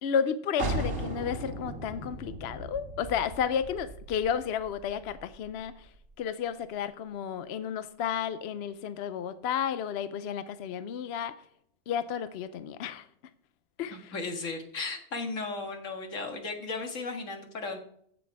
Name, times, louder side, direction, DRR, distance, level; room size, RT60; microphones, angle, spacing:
voice 1, 0.0-5.7 6.2-11.3 11.9-13.1 13.8-14.1, left 8 dB, 65° left, 13 dB, 0.8 m, -32 dB
sound 1, 0.6-6.1, right 1 dB, 90° right, 2.2 m, -37 dB
voice 2, 13.9-17.8, left 3 dB, 85° left, 4 dB, 2.0 m, -35 dB
15.0 x 6.2 x 4.8 m, 0.67 s
omnidirectional pair, 1.3 m